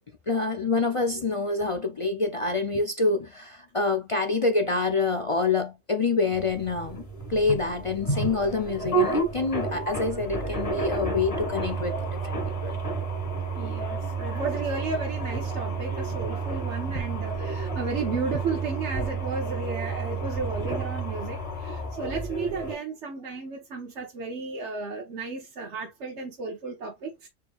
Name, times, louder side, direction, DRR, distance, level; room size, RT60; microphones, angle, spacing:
voice 1, 0.3-7.0 7.3-12.8, left 3 dB, 55° left, 0.3 m, -26 dB
sound 1, 6.3-22.8, right 3 dB, 30° left, 2.1 m, -30 dB
voice 2, 13.5-27.3, right 4 dB, 65° right, 1.3 m, -34 dB
4.9 x 4.3 x 2.4 m
omnidirectional pair, 1.3 m